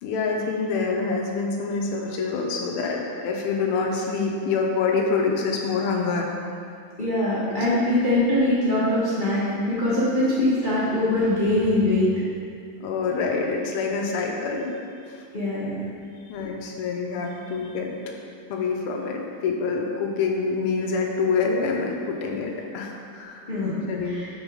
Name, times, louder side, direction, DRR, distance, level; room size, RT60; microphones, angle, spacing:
voice 1, 0.0-6.3 7.5-7.6 12.8-14.7 15.1-15.2 16.3-17.9 18.5-23.4 23.9-24.3, left 4 dB, 85° left, 1 dB, 1.6 m, -26 dB
voice 2, 7.0-12.1 15.3-15.8 23.5-24.3, left 1 dB, 35° left, -11 dB, 0.8 m, -23 dB
5.3 x 3.9 x 4.8 m, 2.3 s
omnidirectional pair, 2.4 m